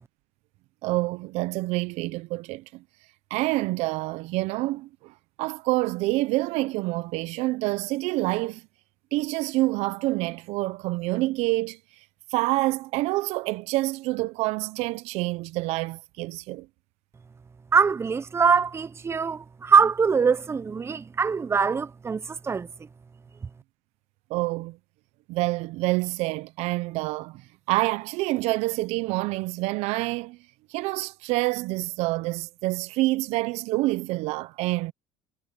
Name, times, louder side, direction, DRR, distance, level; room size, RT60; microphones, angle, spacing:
voice 1, 0.8-2.8 3.3-8.6 9.1-11.8 12.3-16.7 24.3-24.8 25.3-27.4 27.7-30.4 30.7-34.9, right 20 dB, 70° right, 0.7 m, -27 dB
voice 2, 17.7-22.7, right 5 dB, 20° right, 0.8 m, -23 dB
supercardioid pair, 95°, 12 cm